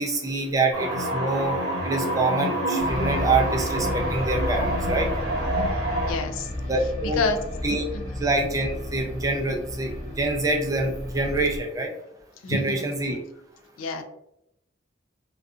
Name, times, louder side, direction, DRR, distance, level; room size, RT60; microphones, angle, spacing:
voice 1, 0.0-5.1 6.7-7.2 7.6-7.8 8.2-11.9 12.5-13.2, right 2 dB, 15° right, 1 dB, 0.3 m, -26 dB
sound 1, 0.7-6.1, right 1 dB, 60° right, 0.9 m, -27 dB
sound 2, 2.8-11.6, left 1 dB, 35° left, 0.6 m, -32 dB
voice 2, 5.5-6.5 7.1-7.4 7.9-8.2 12.4-12.9 13.8-14.0, left 3 dB, 90° left, 7 dB, 0.4 m, -29 dB
2.6 x 2.3 x 2.3 m, 0.80 s
head